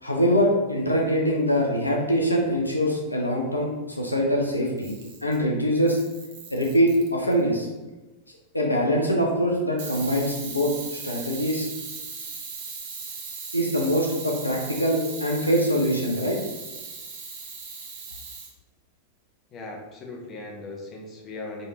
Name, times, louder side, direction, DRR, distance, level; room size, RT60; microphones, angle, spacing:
voice 1, 0.0-4.9 5.2-6.0 6.5-7.7 8.5-11.7 13.5-16.4, equal, 85° left, -1 dB, 0.6 m, -23 dB
Camera, 4.7-5.4 5.9-7.4 9.8-18.5, right 5 dB, 50° right, 0.9 m, -38 dB
voice 2, 19.5-21.7, left 2 dB, 30° left, -1 dB, 1.0 m, -38 dB
4.4 x 3.2 x 3.1 m, 1.1 s
figure-of-eight pair, 90°, 0 cm